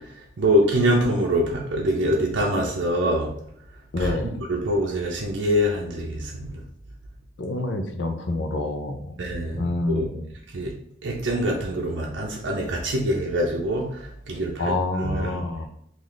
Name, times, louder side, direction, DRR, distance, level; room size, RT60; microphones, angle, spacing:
voice 1, 0.4-3.3 4.0-4.1 4.5-6.5 9.2-10.1 10.5-10.7 11.0-13.9 14.3-14.7 15.0-15.4, equal, 80° right, -2 dB, 0.6 m, -24 dB
voice 2, 3.9-4.4 7.4-9.1 9.6-10.3 14.6-15.7, left 2 dB, 75° left, 5 dB, 0.5 m, -27 dB
3.1 x 2.5 x 3.8 m, 0.71 s
head